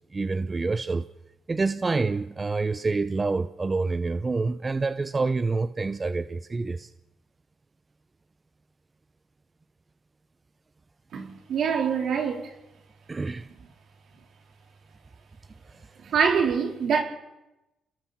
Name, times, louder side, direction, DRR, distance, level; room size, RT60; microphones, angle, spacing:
voice 1, 0.1-1.1 1.5-6.9 13.1-13.5 15.7-15.8, right 3 dB, 25° right, 0.7 m, -27 dB
voice 2, 11.1-12.5 16.0-17.0, right 6 dB, 65° right, 3.9 m, -25 dB
29.5 x 20.5 x 4.3 m
cardioid pair, 90°, 0 cm